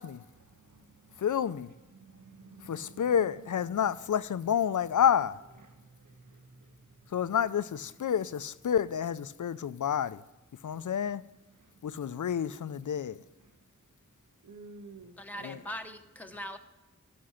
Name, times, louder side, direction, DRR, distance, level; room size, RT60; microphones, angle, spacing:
voice 1, 0.4-1.2 1.9-3.0 5.8-6.8 14.4-15.6, right 3 dB, 85° right, 1.0 m, -52 dB
voice 2, 1.2-1.7 2.6-5.4 7.1-10.2 10.6-11.2 11.8-13.2 15.4-15.6, left 8 dB, 90° left, 0.5 m, -29 dB
voice 3, 15.2-16.6, equal, 5° left, 0.9 m, -41 dB
12.5 x 6.4 x 5.7 m
wide cardioid pair, 75°, 29 cm